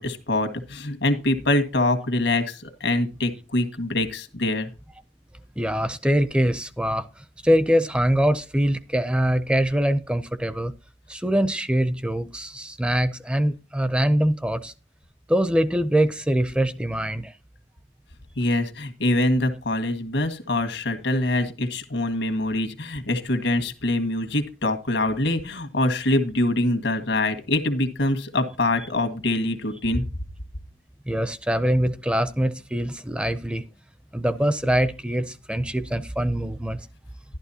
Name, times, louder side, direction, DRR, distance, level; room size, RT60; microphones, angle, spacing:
voice 1, 0.0-4.7 18.4-30.0, left 1 dB, 80° left, 1.6 m, -24 dB
voice 2, 5.6-10.7 11.1-14.7 15.3-17.3 28.8-28.9 31.1-33.6 34.1-36.9, equal, 5° right, 0.4 m, -23 dB
11.5 x 11.5 x 2.8 m
head